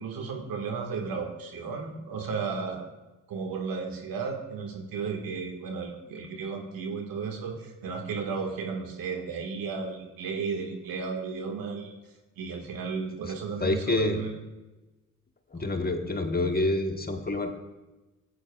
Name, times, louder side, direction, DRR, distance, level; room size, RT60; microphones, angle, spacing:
voice 1, 0.0-2.8 3.3-12.0 12.4-14.3 15.6-15.7, right 5 dB, 60° right, 2 dB, 1.8 m, -34 dB
voice 2, 13.6-14.2 15.5-17.5, left 2 dB, 25° left, 5 dB, 1.3 m, -27 dB
15.0 x 8.6 x 2.4 m, 1.1 s
hypercardioid pair, 45°, 38 cm